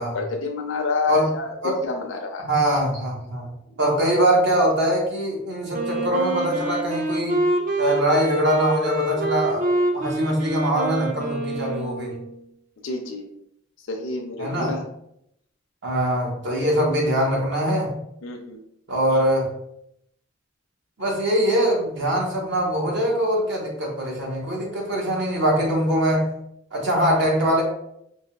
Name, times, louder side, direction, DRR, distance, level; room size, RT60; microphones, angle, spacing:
voice 1, 0.0-1.5 1.8-2.5 12.8-13.3 13.9-14.8 18.2-18.6, left 3 dB, 70° left, 2 dB, 0.5 m, -28 dB
voice 2, 2.4-3.5 3.8-7.4 7.8-9.6 9.9-12.1 14.4-14.8 15.8-17.9 18.9-19.5 21.0-26.3 26.7-27.6, right 1 dB, 65° right, -2 dB, 1.1 m, -22 dB
Wind instrument woodwind instrument, 5.7-12.4, right 1 dB, 45° right, 0.5 m, -26 dB
4.7 x 2.9 x 2.3 m, 0.77 s
head